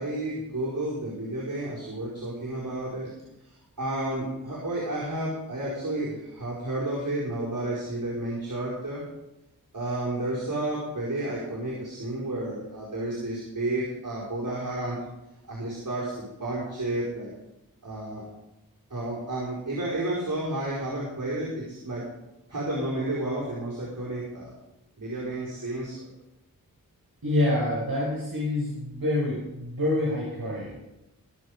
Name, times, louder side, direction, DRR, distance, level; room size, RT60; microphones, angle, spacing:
voice 1, 0.0-3.1 3.4-9.0 9.7-15.0 15.5-17.3 17.8-18.2 18.9-22.0 22.5-24.5 25.0-26.1, right 1 dB, 60° right, -6 dB, 4.8 m, -31 dB
voice 2, 27.2-30.8, left 1 dB, 80° right, -5 dB, 5.7 m, -27 dB
23.0 x 7.9 x 5.1 m, 0.95 s
wide cardioid pair, 45°, 35 cm